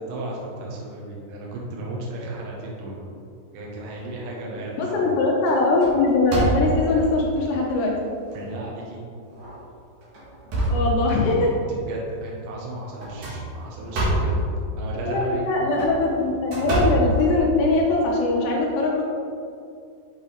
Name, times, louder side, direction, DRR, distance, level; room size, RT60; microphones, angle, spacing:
voice 1, 0.0-2.9 3.5-5.0 8.3-9.0 11.4-14.3 14.8-15.4, right 2 dB, 75° right, -3 dB, 3.2 m, -35 dB
sound 1, 3.8-4.4 4.9-5.1 5.5-7.0 7.7-7.8 8.3-8.4 9.3-9.5 10.0-11.5 13.0-14.4 15.6-17.8, equal, 60° right, 2.0 m, -26 dB
voice 2, 4.8-7.9 10.7-11.5 15.1-19.0, left 2 dB, 80° left, -2 dB, 2.8 m, -21 dB
8.2 x 5.2 x 3.3 m, 2.4 s
omnidirectional pair, 5.1 m